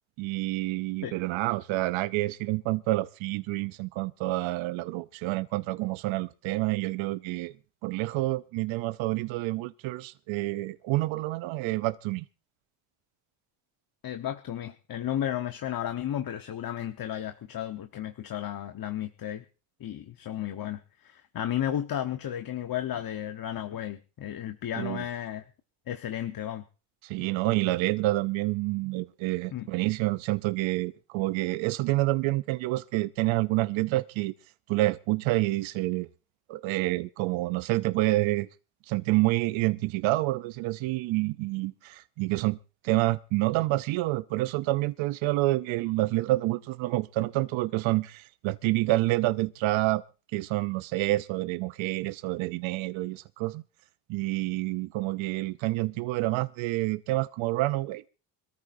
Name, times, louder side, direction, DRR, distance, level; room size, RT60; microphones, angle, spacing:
voice 1, 0.2-7.5 7.8-12.3 24.7-25.0 27.0-34.3 34.7-36.1 36.5-38.5 38.9-42.6 42.8-50.0 50.3-53.6 54.1-58.1, right 18 dB, 85° right, 0.7 m, -28 dB
voice 2, 14.0-19.4 19.8-25.4 25.9-26.6 29.5-29.7, left 11 dB, 50° left, 1.2 m, -33 dB
26.0 x 13.5 x 2.6 m
cardioid pair, 95°, 45 cm